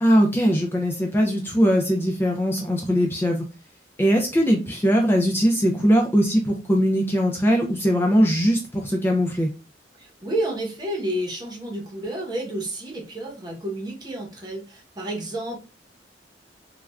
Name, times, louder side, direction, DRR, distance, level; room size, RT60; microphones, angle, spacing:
voice 1, 0.0-3.4 4.0-9.5, equal, 10° left, 1 dB, 0.3 m, -20 dB
voice 2, 10.0-15.6, right 1 dB, 25° right, -2 dB, 0.9 m, -30 dB
3.2 x 2.3 x 2.2 m, 0.33 s
head